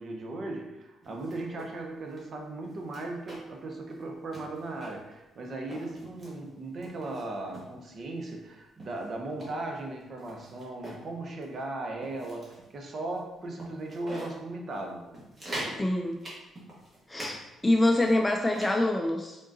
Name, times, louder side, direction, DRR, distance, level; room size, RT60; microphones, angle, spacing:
voice 1, 0.0-15.0, right 2 dB, 50° right, 2 dB, 0.7 m, -37 dB
sound 1, 1.0-1.7 2.1-2.2 2.6-3.6 3.9-4.0 4.3-5.1 5.5-6.4 6.8-7.7 8.3-8.4 8.8-11.1 11.4-11.6 12.0-12.7 13.1-13.2 13.6-14.4 14.7-14.8 15.1-15.8 16.2-17.4 17.6-18.8, right 1 dB, 35° right, 1.3 m, -43 dB
voice 2, 15.7-16.2 17.1-19.4, left 1 dB, 15° left, 2 dB, 0.3 m, -25 dB
3.7 x 3.6 x 2.6 m, 0.99 s
cardioid pair, 90°, 0 cm